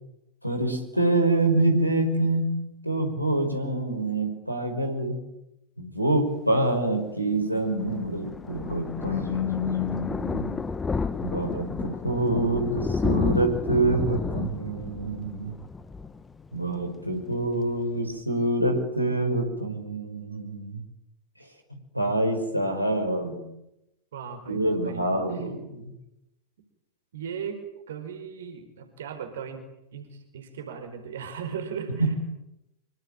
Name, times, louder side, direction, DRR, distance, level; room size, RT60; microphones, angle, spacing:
voice 1, 0.4-5.2 5.8-10.6 11.2-15.5 16.5-20.8 21.9-23.5 24.5-25.8 32.0-32.1, right 1 dB, 90° right, 3 dB, 5.5 m, -26 dB
Thunder, 7.5-16.9 17.2-17.5 17.8-17.9 18.1-18.2, left 4 dB, 15° left, 1.6 m, -31 dB
voice 2, 24.1-25.1 25.3-25.5 27.1-27.6 27.9-29.7 29.9-32.1, right 7 dB, 60° right, 6 dB, 4.8 m, -37 dB
26.0 x 25.0 x 9.0 m, 0.88 s
figure-of-eight pair, 90°, 0 cm